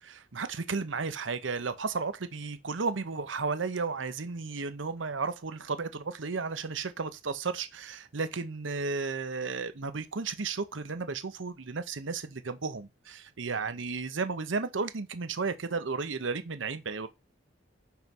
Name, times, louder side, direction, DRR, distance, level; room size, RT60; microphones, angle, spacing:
voice 1, 0.0-17.1, right 4 dB, 85° right, 0.8 m, -33 dB
5.7 x 4.5 x 5.4 m
head